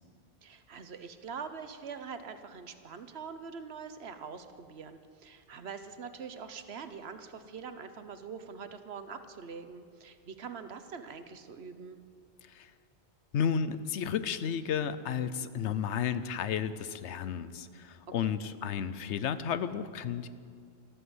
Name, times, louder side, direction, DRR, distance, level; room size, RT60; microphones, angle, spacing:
voice 1, 0.4-12.0 18.2-18.3, right 6 dB, 65° right, 10 dB, 1.2 m, -44 dB
voice 2, 13.3-20.3, left 7 dB, 85° left, 13 dB, 1.0 m, -32 dB
13.0 x 13.0 x 7.9 m, 2.1 s
omnidirectional pair, 1.2 m